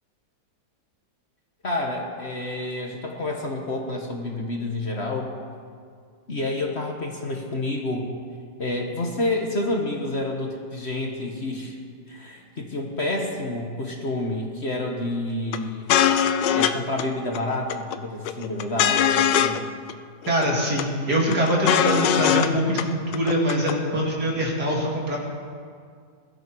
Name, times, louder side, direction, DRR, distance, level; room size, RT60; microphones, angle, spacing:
voice 1, 1.6-5.3 6.3-8.1 8.6-11.8 12.1-15.9 16.5-19.6, left 2 dB, 40° left, 1 dB, 1.5 m, -29 dB
sound 1, 15.5-15.6 15.9-16.7 17.0-17.1 17.3-18.0 18.3-19.6 19.9-20.0 20.2-20.8 21.1-22.5 22.8-22.9 23.1-23.7, left 9 dB, 80° left, 1.3 m, -21 dB
voice 2, 20.3-25.2, equal, 60° right, -2 dB, 3.2 m, -23 dB
21.5 x 12.5 x 4.6 m, 2.2 s
omnidirectional pair, 1.9 m